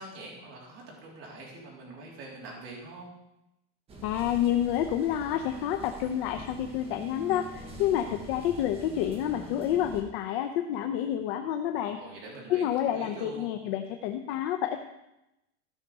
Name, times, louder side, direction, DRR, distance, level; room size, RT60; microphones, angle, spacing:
voice 1, 0.0-3.1 11.9-13.5, right 2 dB, 35° right, -3 dB, 3.4 m, -44 dB
sound 1, 3.9-10.0, right 1 dB, 15° right, 1.2 m, -44 dB
voice 2, 4.0-12.0 12.5-14.8, left 11 dB, 50° left, 5 dB, 0.8 m, -29 dB
15.5 x 5.8 x 5.4 m, 0.92 s
supercardioid pair, 175°, 36 cm